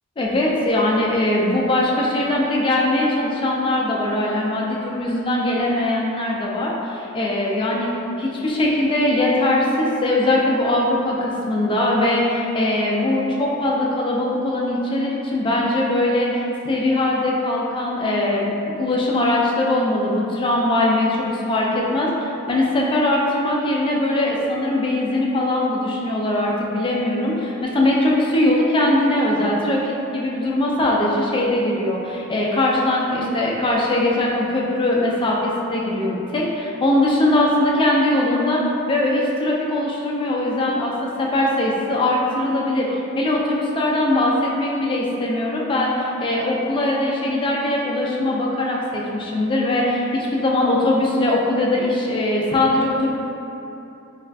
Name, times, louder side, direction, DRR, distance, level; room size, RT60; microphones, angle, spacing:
voice 1, 0.2-53.1, left 1 dB, 25° left, -3 dB, 0.4 m, -21 dB
4.0 x 2.4 x 2.2 m, 2.9 s
head